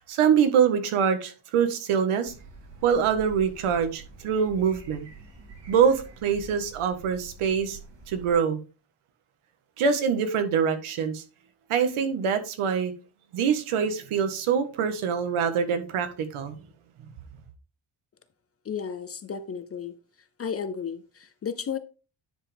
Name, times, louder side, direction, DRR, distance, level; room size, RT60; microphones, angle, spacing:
voice 1, 0.0-2.3 2.8-5.1 5.7-7.8 8.1-8.6 9.8-11.2 11.7-12.9 13.3-16.5, right 7 dB, 80° right, 1.5 m, -24 dB
sound 1, 2.2-8.3, right 4 dB, 55° right, 2.6 m, -46 dB
voice 2, 18.7-19.9 20.4-21.8, left 7 dB, 30° left, 0.5 m, -33 dB
9.9 x 5.0 x 3.4 m
cardioid pair, 165°, 50 cm